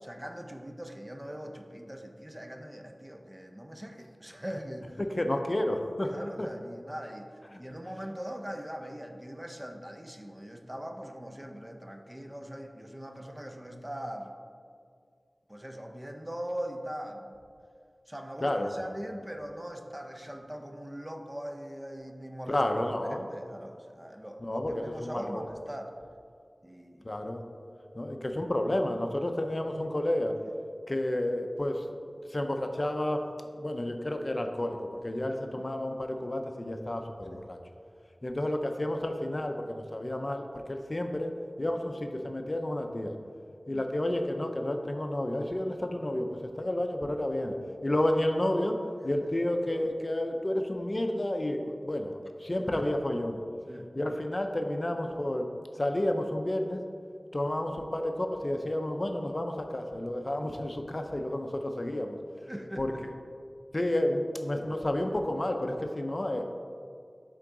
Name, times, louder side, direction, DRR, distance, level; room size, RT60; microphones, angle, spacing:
voice 1, 0.0-5.0 5.3-5.4 6.0-7.3 7.6-14.3 15.5-17.4 18.1-25.9 26.6-27.1 30.4-30.5 35.5-35.6 37.3-37.5 43.7-43.8 49.2-49.4 52.7-52.9 53.7-53.9 62.5-63.0, equal, 15° right, 4 dB, 0.6 m, -41 dB
voice 2, 5.2-6.1 6.4-6.5 18.4-18.7 22.5-23.2 24.4-25.4 27.0-27.4 28.0-30.3 30.9-31.8 32.3-33.2 33.6-37.6 38.2-41.3 41.6-43.1 43.7-47.5 47.8-48.8 49.0-53.4 53.9-55.5 55.8-56.8 57.3-62.2 62.8-62.9 63.7-66.4, left 1 dB, 45° left, 5 dB, 0.5 m, -31 dB
8.1 x 3.8 x 3.8 m, 2.2 s
wide cardioid pair, 45°, 0 cm